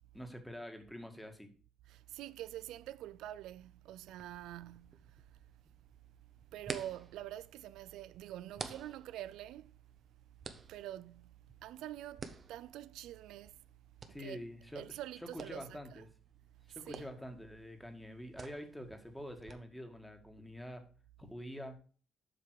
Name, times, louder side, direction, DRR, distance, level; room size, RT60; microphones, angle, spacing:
voice 1, 0.1-1.5 14.1-16.1 16.8-20.9 21.2-21.8, equal, 5° left, 1.9 m, -46 dB
voice 2, 1.9-5.4 6.5-9.8 10.7-11.3 11.6-13.6 14.2-14.4 14.8-16.0 16.7-17.0, right 13 dB, 90° right, 0.4 m, -46 dB
sound 1, 4.0-19.5, right 5 dB, 45° right, 1.2 m, -52 dB
8.0 x 5.8 x 4.8 m
cardioid pair, 90°, 0 cm